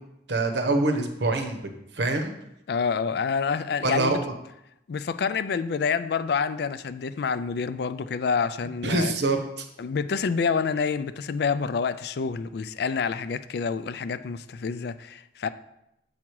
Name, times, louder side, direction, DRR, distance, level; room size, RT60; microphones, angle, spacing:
voice 1, 0.3-1.6 1.9-2.3 3.8-4.3 8.8-9.7, right 2 dB, 75° right, 0.9 m, -25 dB
voice 2, 2.7-4.2 4.9-9.1 9.8-15.5, left 5 dB, 65° left, 0.4 m, -27 dB
7.1 x 4.9 x 4.6 m
head